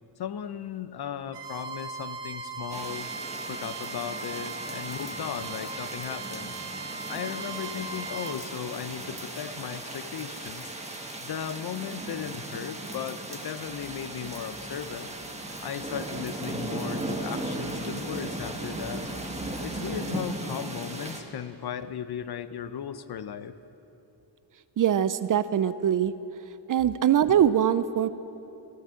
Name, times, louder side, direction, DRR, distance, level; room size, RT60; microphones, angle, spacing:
voice 1, 0.2-3.1 3.5-6.5 7.1-10.7 11.2-15.1 15.6-19.1 19.6-23.6, left 9 dB, 55° left, 12 dB, 0.7 m, -36 dB
Bowed string instrument, 1.3-8.4, right 4 dB, 65° right, 1.4 m, -39 dB
sound 1, 2.7-21.2, right 2 dB, 15° right, 1.4 m, -37 dB
sound 2, 13.5-19.8, left 1 dB, 80° left, 4.9 m, -49 dB
voice 2, 24.8-26.1 26.7-28.1, right 9 dB, 45° right, 14 dB, 0.5 m, -22 dB
14.5 x 13.0 x 7.6 m, 2.9 s
wide cardioid pair, 125°, 45 cm